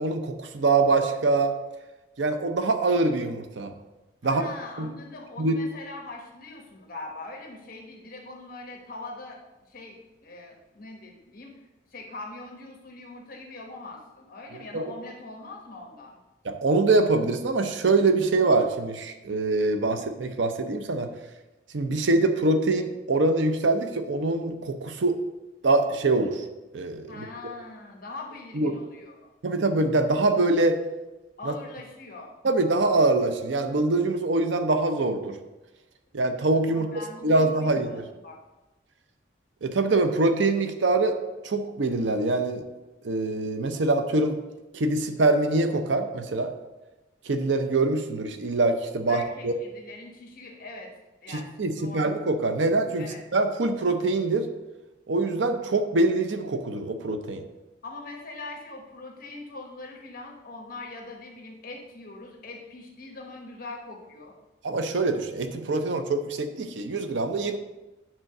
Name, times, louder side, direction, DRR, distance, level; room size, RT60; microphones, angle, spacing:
voice 1, 0.0-1.5 2.2-3.7 4.2-4.4 4.8-4.9 5.4-5.6 14.7-14.8 16.4-21.1 21.7-25.2 25.6-26.5 26.7-27.3 28.5-28.7 29.4-30.8 31.5-31.6 32.4-35.4 36.1-36.9 37.2-38.0 39.6-41.2 41.4-42.6 43.0-44.4 44.7-46.5 47.3-49.5 51.3-54.5 55.1-57.4 64.6-67.6, right 2 dB, 80° right, 7 dB, 0.6 m, -24 dB
voice 2, 4.2-11.6 11.9-16.2 27.1-29.3 31.4-32.4 36.7-38.4 49.1-50.9 51.2-51.5 51.8-52.1 53.0-53.2 57.8-64.3, left 2 dB, 50° left, 0 dB, 1.1 m, -42 dB
8.9 x 3.7 x 6.5 m, 1.1 s
head